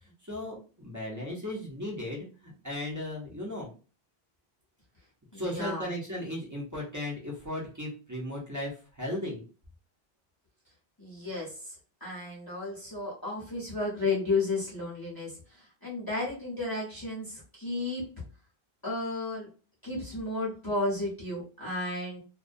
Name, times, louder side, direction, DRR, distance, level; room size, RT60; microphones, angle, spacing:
voice 1, 0.3-3.7 5.4-8.7 9.0-9.4, left 1 dB, 20° right, -4 dB, 0.6 m, -36 dB
voice 2, 5.3-5.9 11.0-11.8 12.0-18.1 18.8-19.5 19.8-22.2, left 2 dB, 25° left, -6 dB, 0.8 m, -33 dB
2.3 x 2.1 x 2.5 m, 0.36 s
omnidirectional pair, 1.1 m